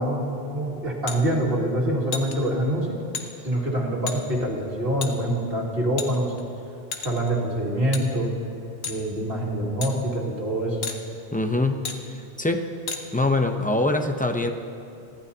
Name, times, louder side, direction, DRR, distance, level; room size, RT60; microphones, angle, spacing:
voice 1, 0.0-3.0 3.4-6.3 7.0-8.3 8.9-10.8, right 1 dB, 65° right, -2 dB, 2.3 m, -25 dB
sound 1, 1.1-1.2 2.1-2.3 3.1-3.3 4.1-4.2 5.0-5.1 6.0-6.4 6.9-7.3 7.9-8.0 8.8-9.0 9.8-9.9 10.8-11.0 11.8-12.0 12.9-13.0, left 5 dB, 75° left, 1.3 m, -31 dB
voice 2, 11.3-11.8 12.4-12.7 13.1-14.5, left 2 dB, 10° left, 4 dB, 0.6 m, -23 dB
24.0 x 15.0 x 2.8 m, 2.6 s
omnidirectional pair, 1.0 m